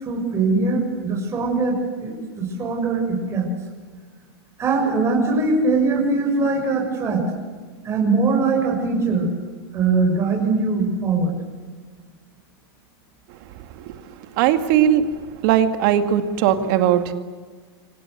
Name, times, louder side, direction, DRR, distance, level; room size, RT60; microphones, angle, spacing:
voice 1, 0.0-3.5 4.6-7.2 7.8-9.3 9.7-11.4 14.7-14.8, right 3 dB, 20° right, 0 dB, 6.8 m, -21 dB
voice 2, 14.4-15.0 15.4-17.1, right 11 dB, 50° right, 8 dB, 2.2 m, -18 dB
27.0 x 25.5 x 8.0 m, 1.5 s
supercardioid pair, 140°, 13 cm